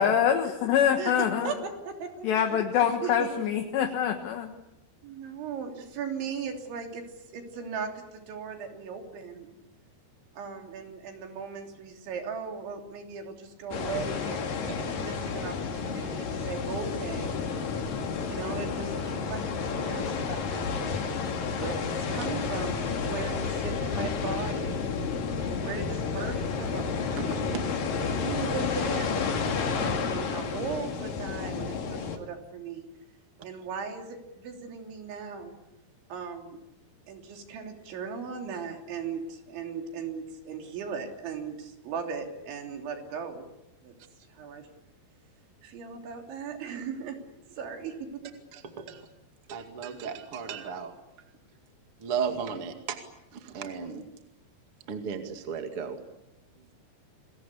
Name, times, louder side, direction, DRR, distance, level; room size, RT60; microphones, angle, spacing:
voice 1, 0.0-1.5 2.2-4.5, left 8 dB, 70° left, 4 dB, 3.5 m, -25 dB
voice 2, 1.0-2.3 2.8-3.4 5.0-7.0 7.3-9.5 10.3-14.4 14.8-17.3 18.2-21.1 21.6-24.8 25.4-27.7 28.1-32.9 33.4-35.5 36.1-36.6 37.1-43.5 43.8-43.9 44.3-44.6 45.6-47.2 47.5-48.3, right 6 dB, 75° right, 3 dB, 5.5 m, -38 dB
sound 1, 13.7-32.2, left 5 dB, 55° left, 3.6 m, -31 dB
voice 3, 48.5-49.1 49.5-50.9 52.0-53.0 53.3-54.0 54.9-56.0, right 6 dB, 40° right, 5 dB, 2.3 m, -35 dB
29.5 x 22.0 x 8.5 m, 0.89 s
omnidirectional pair, 5.3 m